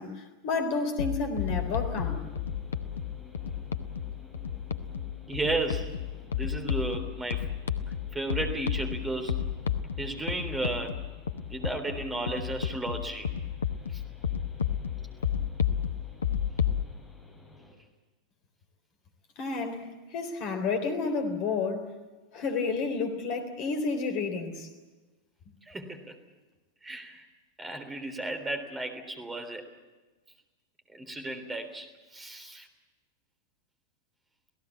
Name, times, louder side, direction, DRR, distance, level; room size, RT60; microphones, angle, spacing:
voice 1, 0.0-2.3 19.4-21.9 22.3-24.7, left 4 dB, 45° left, 3.6 m, -31 dB
sound 1, 1.0-16.8, left 8 dB, 70° left, 1.0 m, -32 dB
sound 2, 1.4-17.7, left 1 dB, 5° left, 7.4 m, -53 dB
voice 2, 5.3-6.0 6.3-7.5 8.1-9.3 10.0-11.0 11.5-13.3 13.9-14.0 19.6-19.7 25.6-26.1 26.8-27.2 27.6-29.6 30.9-32.7, right 2 dB, 10° right, 3.6 m, -34 dB
27.5 x 17.0 x 8.4 m
figure-of-eight pair, 90°, 0 cm